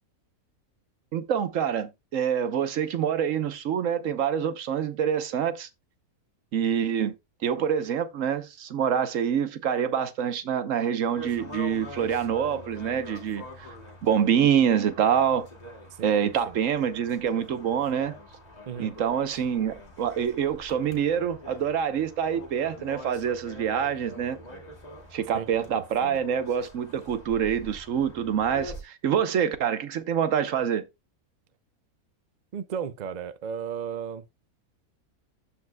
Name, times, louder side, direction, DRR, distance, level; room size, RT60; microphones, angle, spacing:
voice 1, 1.1-5.7 6.5-7.1 7.4-13.7 14.0-15.5 16.0-18.1 18.8-24.4 25.1-30.9, right 8 dB, 60° right, 1.2 m, -26 dB
sound 1, 11.1-28.8, equal, 25° left, 2.4 m, -44 dB
voice 2, 15.9-16.6 18.7-18.9 25.3-26.2 32.5-34.2, right 7 dB, 80° right, 0.4 m, -35 dB
14.0 x 4.8 x 2.2 m
omnidirectional pair, 1.6 m